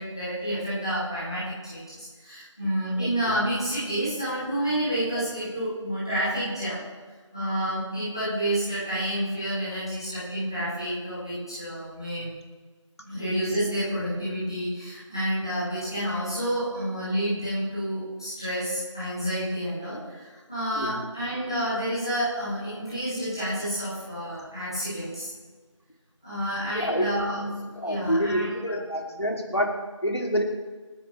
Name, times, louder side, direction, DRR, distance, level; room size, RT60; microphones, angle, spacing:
voice 1, 0.0-6.8 7.3-12.3 13.0-25.3 26.2-28.8, equal, 10° left, -13 dB, 2.4 m, -29 dB
voice 2, 26.7-27.2 27.8-29.7 30.0-30.4, equal, 55° left, 1 dB, 2.8 m, -27 dB
28.0 x 9.9 x 3.3 m, 1.4 s
figure-of-eight pair, 175°, 16 cm